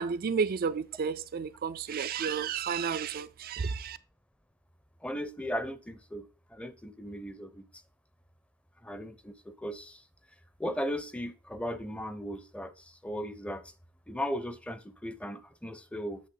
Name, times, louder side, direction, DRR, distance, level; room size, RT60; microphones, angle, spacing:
voice 1, 0.0-4.0, right 6 dB, 45° right, 0.4 m, -32 dB
voice 2, 5.0-7.7 8.8-10.0 10.6-13.7 14.1-16.2, equal, 5° left, 0.6 m, -37 dB
8.5 x 6.3 x 3.8 m
head